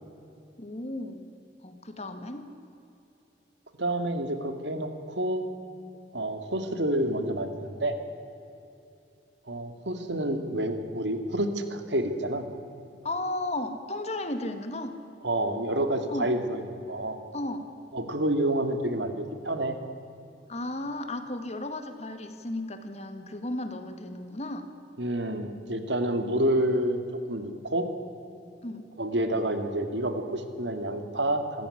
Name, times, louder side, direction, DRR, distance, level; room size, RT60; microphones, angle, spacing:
voice 1, 0.6-1.3 1.6-2.5 13.0-15.0 16.1-16.3 17.3-17.7 20.5-24.7 28.6-28.8, left 1 dB, 35° left, 8 dB, 1.9 m, -34 dB
voice 2, 3.8-5.5 6.1-8.0 9.5-12.5 15.2-17.2 17.9-19.8 25.0-27.0 27.3-27.9 29.0-31.7, right 1 dB, 75° right, 7 dB, 2.3 m, -28 dB
26.5 x 15.0 x 9.9 m, 2.7 s
head